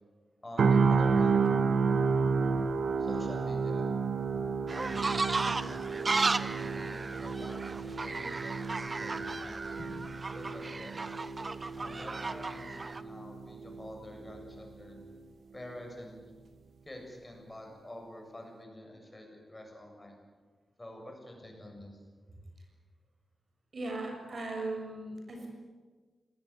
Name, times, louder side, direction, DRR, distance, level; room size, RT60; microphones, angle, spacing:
voice 1, 0.4-1.5 3.0-3.9 4.7-10.0 10.3-11.2 11.7-15.0 15.5-16.2 16.8-20.2 20.8-22.0, left 1 dB, 15° left, 2 dB, 7.3 m, -47 dB
sound 1, 0.6-14.6 14.9-15.1, right 5 dB, 80° right, 1.8 m, -31 dB
sound 2, 4.7-13.0, right 3 dB, 35° right, 1.0 m, -35 dB
voice 2, 23.7-25.5, right 2 dB, 50° right, 2 dB, 7.4 m, -38 dB
26.5 x 19.5 x 9.8 m, 1.4 s
wide cardioid pair, 140°, 0 cm